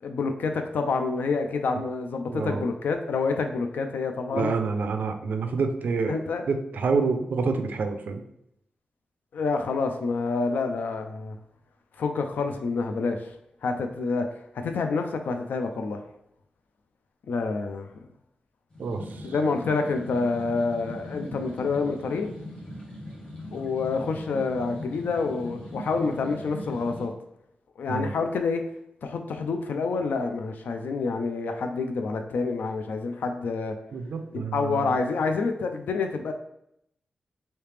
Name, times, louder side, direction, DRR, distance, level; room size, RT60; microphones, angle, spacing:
voice 1, 0.0-4.5 6.1-6.4 9.3-11.4 12.0-13.3 13.6-14.3 14.5-16.0 17.3-17.9 19.3-22.3 23.5-27.1 27.8-28.6 29.0-33.8 34.3-36.3, left 4 dB, 85° left, 5 dB, 0.3 m, -28 dB
voice 2, 2.3-2.6 4.3-6.2 6.5-8.2 18.8-19.3 27.9-28.1 33.9-35.0, right 4 dB, 75° right, 6 dB, 0.4 m, -28 dB
sound 1, 18.7-27.0, left 1 dB, 30° left, 1.1 m, -40 dB
3.2 x 2.8 x 3.2 m, 0.75 s
wide cardioid pair, 140°, 3 cm